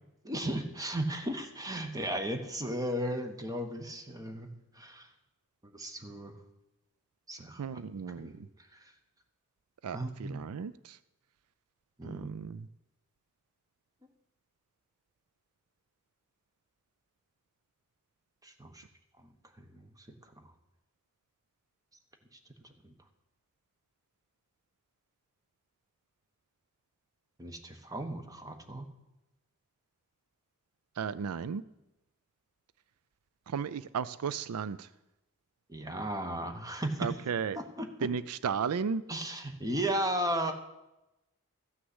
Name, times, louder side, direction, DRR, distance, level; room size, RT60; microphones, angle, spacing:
voice 1, 0.2-5.1 5.6-6.3 7.3-7.8 8.2-8.4 8.7-8.8 9.9-10.4 12.0-12.3 18.4-18.8 19.2-19.8 22.8-22.9 27.4-28.9 35.7-37.1 37.5-38.1 39.1-40.5, right 1 dB, 15° right, 6 dB, 1.2 m, -35 dB
voice 2, 7.6-8.5 9.8-11.0 12.0-12.7 31.0-31.6 33.5-34.9 37.0-37.6 38.0-39.0, right 6 dB, 80° right, 16 dB, 0.4 m, -34 dB
14.0 x 6.3 x 7.9 m, 0.93 s
head